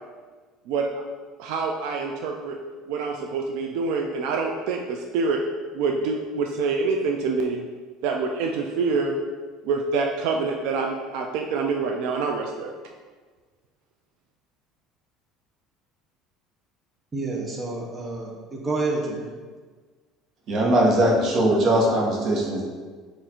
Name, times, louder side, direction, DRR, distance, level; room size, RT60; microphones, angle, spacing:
voice 1, 0.7-1.0 1.4-2.6 2.9-5.4 5.7-7.7 8.0-9.2 9.6-12.7, right 4 dB, 75° right, 2 dB, 0.3 m, -26 dB
voice 2, 17.1-19.3, right 3 dB, 20° right, -1 dB, 0.6 m, -29 dB
voice 3, 20.5-22.6, right 1 dB, 50° right, -2 dB, 1.0 m, -20 dB
4.2 x 2.5 x 4.2 m, 1.5 s
cardioid pair, 130°, 0 cm